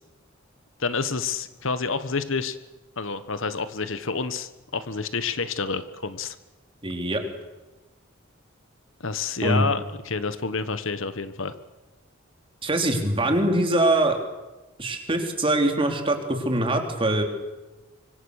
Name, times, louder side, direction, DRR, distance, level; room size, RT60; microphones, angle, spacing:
voice 1, 0.8-2.6 3.0-6.4 9.0-11.5, left 4 dB, 65° left, 12 dB, 1.3 m, -28 dB
voice 2, 6.8-7.2 9.4-9.7 12.6-14.2 14.8-17.2, right 1 dB, 25° right, 4 dB, 3.3 m, -23 dB
25.5 x 24.5 x 6.6 m, 1.1 s
head